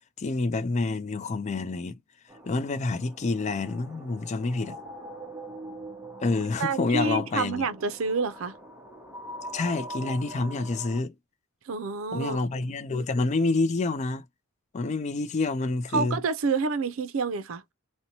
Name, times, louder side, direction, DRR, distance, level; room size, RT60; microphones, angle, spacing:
voice 1, 0.2-2.0 2.5-4.8 6.2-7.7 9.5-11.1 12.1-14.2 14.7-16.2, left 3 dB, 35° left, 0.3 m, -28 dB
sound 1, 2.3-11.0, right 1 dB, 10° right, 0.6 m, -43 dB
voice 2, 6.6-8.6 11.7-12.4 15.9-17.6, right 4 dB, 75° right, 0.5 m, -28 dB
2.6 x 2.1 x 2.8 m
head